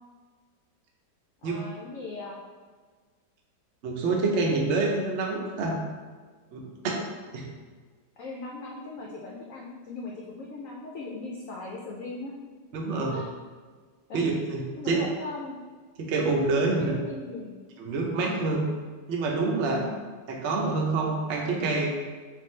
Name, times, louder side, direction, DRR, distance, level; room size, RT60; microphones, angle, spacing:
voice 1, 1.4-2.4 8.2-12.3 13.1-13.2 14.1-14.2 14.8-15.6 16.7-17.6 19.7-20.0, left 3 dB, 70° left, -2 dB, 0.8 m, -38 dB
voice 2, 3.8-5.7 6.5-7.0 7.3-7.4 12.7-13.2 14.1-15.0 16.0-16.9 17.8-18.6 19.1-19.8 20.3-21.9, right 3 dB, 55° right, 0 dB, 0.8 m, -27 dB
4.2 x 3.4 x 3.2 m, 1.5 s
omnidirectional pair, 1.9 m